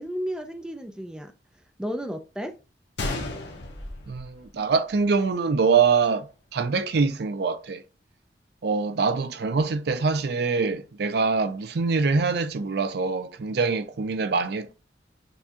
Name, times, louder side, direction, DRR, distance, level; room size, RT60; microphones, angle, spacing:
voice 1, 0.0-1.3 1.8-2.5, equal, 5° right, 0.4 m, -32 dB
Gunshot gunfire, 3.0-5.0 5.3-5.4 6.1-6.3, left 2 dB, 75° left, 1.0 m, -34 dB
voice 2, 4.1-7.8 8.6-14.7, right 4 dB, 65° right, 0.5 m, -24 dB
6.6 x 2.3 x 2.8 m
head